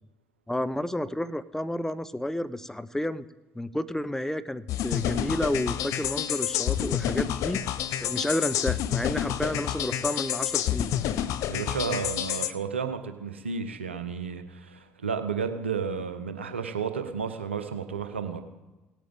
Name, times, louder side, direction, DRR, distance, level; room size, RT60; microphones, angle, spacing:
voice 1, 0.5-3.2 3.5-7.6 8.0-11.0, left 1 dB, 5° left, 14 dB, 0.6 m, -31 dB
sound 1, 4.7-12.5, left 11 dB, 60° left, 0.6 m, -29 dB
voice 2, 11.5-18.4, right 6 dB, 90° right, 8 dB, 0.8 m, -32 dB
18.0 x 8.5 x 3.6 m, 1.1 s
hypercardioid pair, 55°, 6 cm